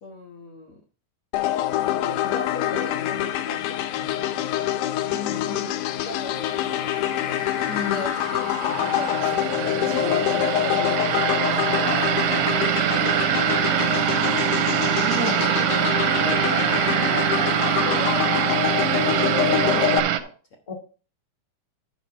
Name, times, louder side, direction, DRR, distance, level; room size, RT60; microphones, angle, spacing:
voice 1, 0.0-0.8 1.9-4.4 5.3-6.8 7.8-14.0 14.9-15.7 16.2-18.7 19.0-20.3, left 2 dB, 50° left, 1 dB, 1.8 m, -37 dB
sound 1, 1.3-20.0, left 12 dB, 75° left, 2.0 m, -25 dB
voice 2, 5.1-5.7 7.7-8.0 15.0-15.5 20.7-20.8, left 3 dB, 10° left, 0 dB, 1.5 m, -32 dB
sound 2, 6.7-20.2, right 12 dB, 75° right, 1.9 m, -24 dB
12.0 x 5.5 x 4.4 m, 0.35 s
omnidirectional pair, 3.9 m